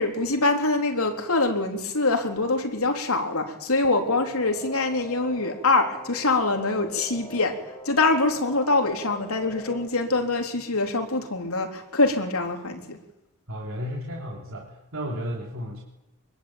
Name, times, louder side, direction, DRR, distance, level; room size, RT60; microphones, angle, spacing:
voice 1, 0.0-13.0, left 3 dB, 80° left, 4 dB, 3.8 m, -24 dB
sound 1, 3.8-9.8, equal, 10° left, 3.2 m, -43 dB
voice 2, 13.5-15.8, equal, 65° right, -2 dB, 3.7 m, -33 dB
25.0 x 22.5 x 9.0 m, 0.91 s
head